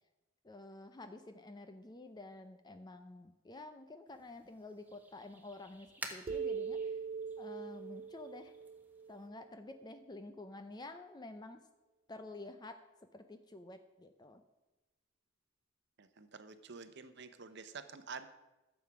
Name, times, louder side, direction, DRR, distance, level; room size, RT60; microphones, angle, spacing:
voice 1, 0.4-7.0 7.4-8.5 9.1-11.6 12.1-12.8 13.1-14.4, left 2 dB, 20° left, 8 dB, 0.6 m, -50 dB
sound 1, 4.1-9.3, right 2 dB, 10° right, 1.2 m, -53 dB
sound 2, 6.3-9.8, right 6 dB, 25° right, 0.3 m, -41 dB
voice 2, 16.0-18.3, right 5 dB, 55° right, 11 dB, 0.9 m, -49 dB
13.0 x 7.5 x 6.0 m, 1.1 s
head